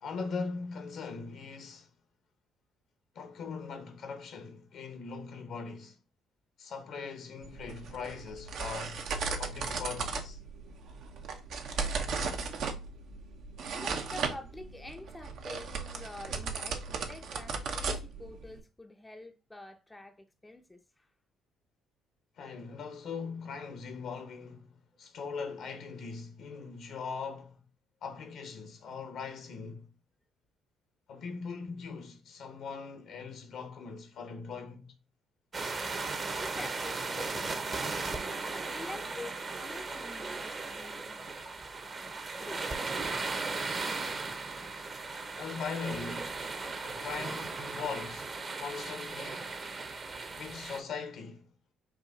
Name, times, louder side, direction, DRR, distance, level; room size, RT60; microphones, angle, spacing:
voice 1, 0.0-1.9 3.1-6.0 6.6-9.1 9.4-10.4 22.4-27.6 28.0-29.9 31.1-34.9 45.4-46.4 46.8-49.6 50.4-51.5, left 5 dB, 65° left, 1.0 m, -40 dB
sound 1, 7.4-18.6, right 4 dB, 65° right, 0.8 m, -36 dB
voice 2, 13.6-21.1 25.1-25.2 36.4-41.2 41.8-41.9 42.4-42.7 43.0-43.1, left 2 dB, 15° left, 0.6 m, -47 dB
sound 2, 35.5-50.8, right 3 dB, 40° right, 0.9 m, -37 dB
4.8 x 2.6 x 3.8 m
hypercardioid pair, 55°, 0 cm